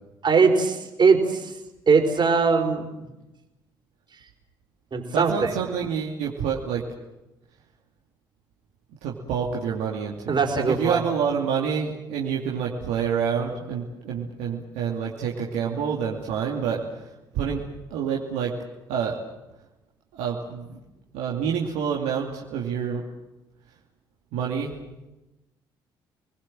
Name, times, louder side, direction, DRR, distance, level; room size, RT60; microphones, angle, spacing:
voice 1, 0.2-1.5 1.9-3.1 4.9-5.5 10.3-11.0, right 5 dB, 40° right, 3 dB, 4.8 m, -21 dB
voice 2, 5.1-6.8 9.0-16.8 17.3-17.6 17.9-18.5 18.9-19.2 20.1-20.8 21.1-23.0 24.3-24.7, right 7 dB, 70° right, -2 dB, 2.7 m, -27 dB
30.0 x 20.5 x 7.7 m, 0.99 s
hypercardioid pair, 50°, 12 cm